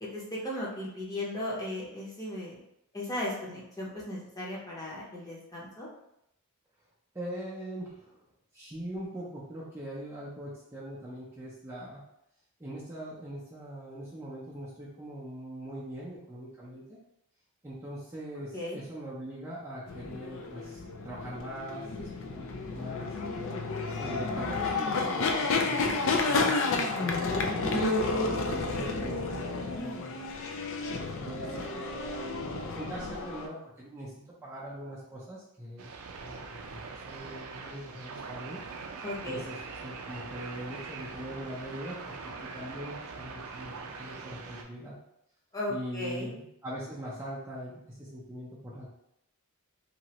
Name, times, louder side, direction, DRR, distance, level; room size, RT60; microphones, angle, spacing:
voice 1, 0.0-2.6 2.9-5.9 18.5-18.8 27.6-28.0 39.0-39.4 45.5-46.3, left 1 dB, 15° left, -5 dB, 0.8 m, -36 dB
voice 2, 7.1-8.2 8.5-12.0 12.6-17.0 17.6-23.1 24.0-27.2 27.5-30.2 31.2-35.9 36.2-38.6 39.3-39.6 39.8-42.1 42.4-44.9 45.7-48.9, right 1 dB, 10° right, -7 dB, 0.5 m, -42 dB
sound 1, 19.9-33.5, left 3 dB, 60° left, 0.4 m, -31 dB
sound 2, 35.8-44.6, right 4 dB, 70° right, 0.4 m, -42 dB
2.9 x 2.6 x 3.0 m, 0.80 s
head